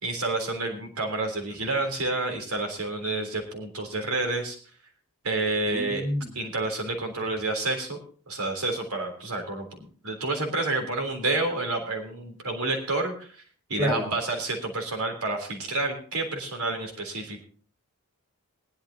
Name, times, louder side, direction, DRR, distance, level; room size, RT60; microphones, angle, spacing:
voice 1, 0.0-4.6 5.2-6.0 6.4-8.0 8.3-13.4 13.7-17.4, right 2 dB, 80° right, 3 dB, 3.5 m, -29 dB
voice 2, 5.6-6.3 13.8-14.1, left 1 dB, 10° right, -2 dB, 7.6 m, -29 dB
20.5 x 12.0 x 2.8 m, 0.43 s
head